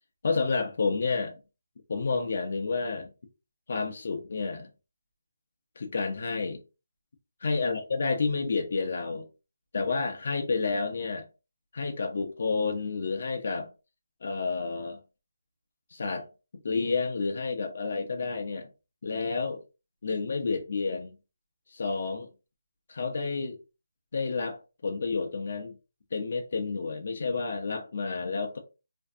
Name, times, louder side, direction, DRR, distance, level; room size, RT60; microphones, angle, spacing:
voice 1, 0.2-1.4 1.9-3.1 3.7-4.7 5.8-6.6 7.4-9.2 9.7-11.2 11.7-13.7 14.2-15.0 15.9-16.3 16.6-18.7 19.0-19.6 20.0-21.2 21.7-22.3 22.9-23.6 24.1-25.7 26.1-28.6, left 4 dB, 40° left, 0.4 m, -30 dB
2.5 x 2.2 x 2.3 m
hypercardioid pair, 180°, 0 cm